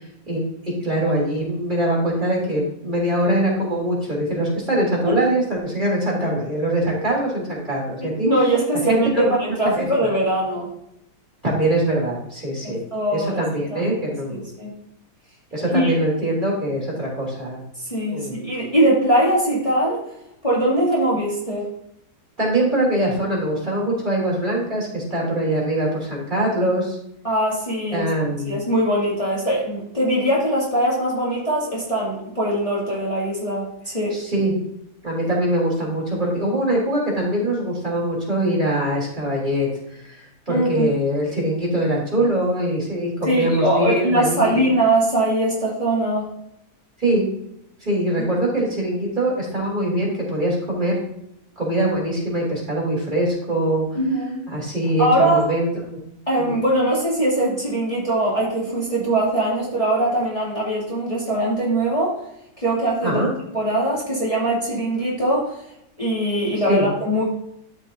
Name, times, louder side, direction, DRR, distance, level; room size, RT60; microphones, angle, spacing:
voice 1, 0.3-8.3 8.9-9.9 11.4-12.8 13.1-14.5 15.5-17.6 18.1-18.4 22.4-27.0 27.9-28.6 34.1-34.6 35.0-39.7 40.1-44.7 47.0-47.3 47.8-51.0 51.6-53.9 54.5-56.0 56.4-56.6 63.0-63.3 66.6-66.9, right 1 dB, 30° right, -5 dB, 3.5 m, -23 dB
voice 2, 8.0-10.7 12.6-13.4 13.7-14.0 14.3-14.7 15.7-15.9 17.9-20.0 20.4-21.7 27.2-28.0 28.5-34.2 40.5-40.9 43.2-46.3 54.0-54.5 55.0-55.5 56.3-62.2 62.6-63.2 63.5-65.5 66.0-67.2, right 1 dB, 20° left, -7 dB, 2.6 m, -21 dB
13.0 x 5.4 x 2.7 m, 0.77 s
omnidirectional pair, 1.6 m